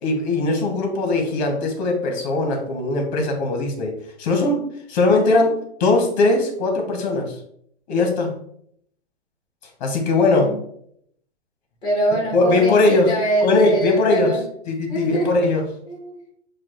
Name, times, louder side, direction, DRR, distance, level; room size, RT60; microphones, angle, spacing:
voice 1, 0.0-7.3 7.9-8.3 9.8-10.5 12.3-13.1 13.4-14.3 14.7-15.6, left 2 dB, 40° left, 3 dB, 1.3 m, -20 dB
voice 2, 11.8-14.4 14.9-15.5 15.9-16.2, right 1 dB, 15° left, -1 dB, 1.4 m, -24 dB
7.0 x 2.5 x 3.0 m, 0.69 s
hypercardioid pair, 160°, 35 cm